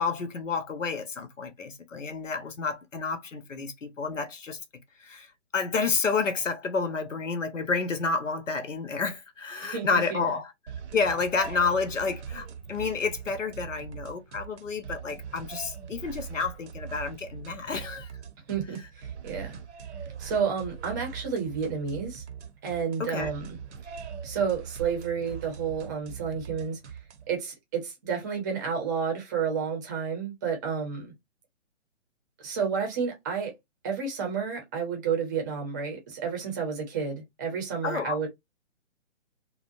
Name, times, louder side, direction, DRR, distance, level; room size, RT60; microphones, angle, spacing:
voice 1, 0.0-4.6 5.0-10.5 10.9-18.1 23.0-23.3 37.8-38.2, left 4 dB, 80° left, 0.8 m, -30 dB
voice 2, 9.6-10.3 18.5-19.6 20.2-22.2 22.6-23.6 23.8-23.9 24.2-26.8 27.3-31.1 32.4-33.5 33.8-38.3, right 6 dB, 15° right, 0.6 m, -31 dB
sound 1, 10.7-27.4, right 7 dB, 65° right, 0.7 m, -42 dB
2.7 x 2.1 x 2.5 m
figure-of-eight pair, 140°, 37 cm